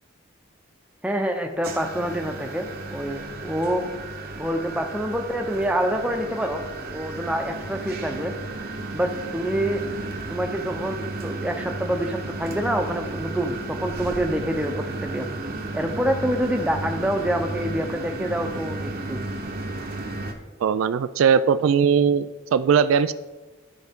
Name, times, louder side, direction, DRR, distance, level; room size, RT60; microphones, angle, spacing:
voice 1, 1.0-3.9 4.3-6.6 6.9-8.3 8.9-9.9 10.3-15.3 15.7-19.3, equal, 5° right, 3 dB, 0.7 m, -26 dB
sound 1, 1.6-20.3, right 2 dB, 45° right, 0.9 m, -33 dB
voice 2, 20.6-23.1, right 7 dB, 75° right, 13 dB, 0.3 m, -19 dB
13.0 x 4.5 x 3.6 m, 1.2 s
head